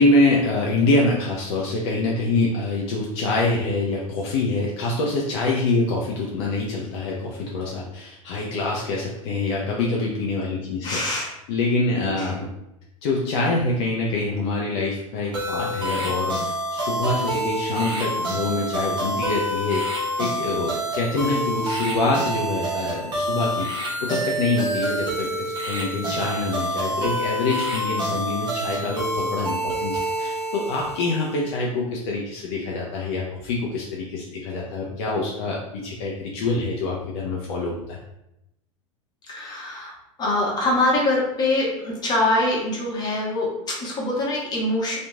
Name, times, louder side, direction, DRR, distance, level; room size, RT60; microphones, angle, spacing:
voice 1, 0.0-12.5 13.0-38.0, left 2 dB, 50° left, -2 dB, 0.5 m, -25 dB
voice 2, 10.8-11.3 12.2-12.4 39.3-39.9 40.2-45.0, left 2 dB, 25° left, -3 dB, 1.0 m, -24 dB
sound 1, 15.3-31.5, right 1 dB, 25° right, 0.9 m, -27 dB
2.9 x 2.5 x 2.3 m, 0.87 s
figure-of-eight pair, 85°, 17 cm